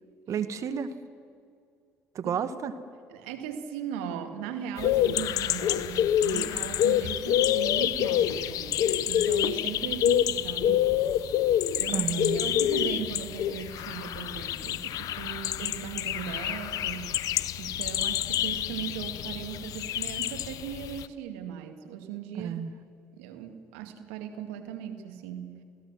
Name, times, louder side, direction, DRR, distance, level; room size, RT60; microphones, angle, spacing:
voice 1, 0.3-0.9 2.1-2.7 11.9-12.4 22.3-22.7, right 7 dB, 55° right, 11 dB, 1.6 m, -31 dB
voice 2, 3.1-10.9 11.8-12.1 12.3-17.1 17.6-22.5 23.2-25.5, right 9 dB, 85° right, 6 dB, 2.1 m, -38 dB
sound 1, 4.8-21.1, left 11 dB, 65° left, 0.8 m, -27 dB
28.0 x 16.5 x 7.6 m, 2.4 s
hypercardioid pair, 60°, 6 cm